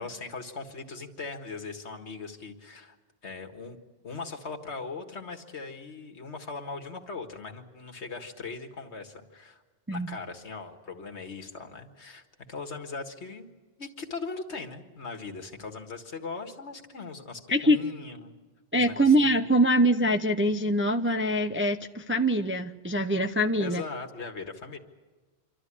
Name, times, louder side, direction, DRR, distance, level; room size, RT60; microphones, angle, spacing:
voice 1, 0.0-3.0 3.2-3.8 4.0-9.6 9.9-13.5 13.8-18.3 18.7-19.4 23.6-24.8, left 4 dB, 70° left, 4 dB, 2.0 m, -39 dB
voice 2, 18.7-23.8, right 1 dB, 15° right, 5 dB, 0.5 m, -24 dB
26.5 x 13.0 x 9.9 m, 1.3 s
omnidirectional pair, 1.2 m